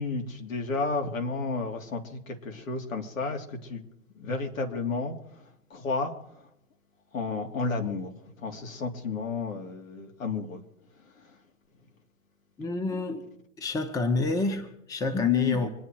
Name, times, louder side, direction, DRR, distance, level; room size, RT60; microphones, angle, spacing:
voice 1, 0.0-3.8 4.1-6.4 7.1-8.1 8.4-10.6 11.1-11.4, left 3 dB, 80° left, 3.4 m, -32 dB
voice 2, 12.6-13.3 13.6-15.7, left 4 dB, 10° left, 0.9 m, -27 dB
26.0 x 9.7 x 4.7 m
hypercardioid pair, 145°, 39 cm